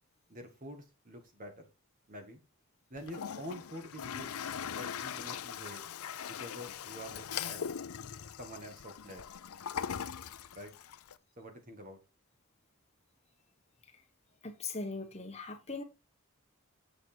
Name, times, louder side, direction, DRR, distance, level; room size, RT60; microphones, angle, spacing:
voice 1, 0.3-1.7 2.1-2.4 2.9-4.4 4.7-5.8 6.2-7.6 8.4-9.2 10.5-10.7 11.4-12.0, equal, 35° right, 2.0 m, -46 dB
Toilet flush, 3.0-11.1, left 8 dB, 85° left, 0.5 m, -41 dB
voice 2, 14.4-15.8, left 3 dB, 30° left, 1.3 m, -40 dB
7.9 x 6.4 x 4.6 m
head